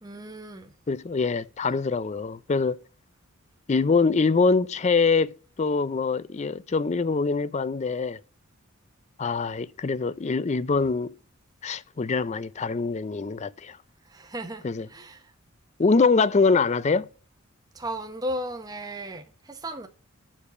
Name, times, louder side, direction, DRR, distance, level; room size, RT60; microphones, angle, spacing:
voice 1, 0.0-0.7 14.1-14.6 14.9-15.2 17.7-19.9, right 1 dB, 15° right, 0.9 m, -35 dB
voice 2, 0.9-2.8 3.7-8.2 9.2-11.1 11.6-13.8 14.6-14.9 15.8-17.1, left 4 dB, 30° left, 0.4 m, -24 dB
7.3 x 6.6 x 5.7 m
head